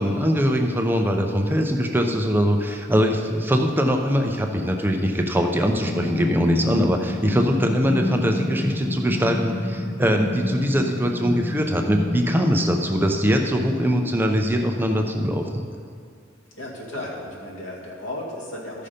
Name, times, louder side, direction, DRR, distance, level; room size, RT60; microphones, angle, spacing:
voice 1, 0.0-15.6, equal, 10° right, 3 dB, 0.6 m, -22 dB
sound 1, 5.9-13.8, left 1 dB, 25° left, 0.7 m, -29 dB
voice 2, 16.5-18.9, left 1 dB, 70° left, -3 dB, 2.2 m, -34 dB
14.0 x 5.6 x 5.1 m, 2.2 s
head